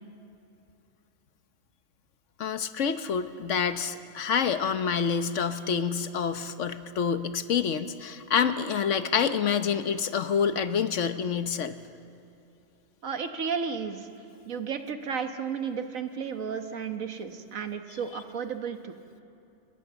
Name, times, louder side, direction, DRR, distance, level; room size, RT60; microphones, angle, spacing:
voice 1, 2.4-11.7, left 7 dB, 70° left, 10 dB, 1.2 m, -27 dB
voice 2, 13.0-14.1 14.5-18.9, right 6 dB, 85° right, 7 dB, 1.7 m, -33 dB
29.0 x 18.5 x 7.0 m, 2.7 s
omnidirectional pair, 1.4 m